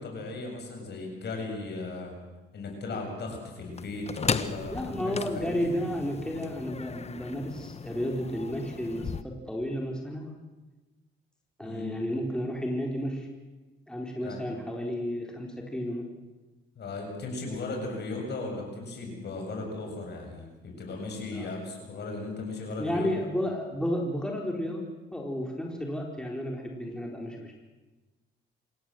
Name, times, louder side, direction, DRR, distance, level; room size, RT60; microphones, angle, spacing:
voice 1, 0.0-2.1 2.5-5.7 11.6-11.9 14.2-14.4 16.8-23.1, left 3 dB, 60° left, 2 dB, 7.6 m, -37 dB
sound 1, 3.8-9.2, left 5 dB, 30° left, 1.2 m, -36 dB
voice 2, 4.7-10.3 11.6-13.3 13.9-16.1 21.3-21.5 22.8-24.8 25.1-27.5, equal, 5° left, 0 dB, 4.3 m, -32 dB
27.0 x 16.5 x 7.9 m, 1.2 s
cardioid pair, 90°, 20 cm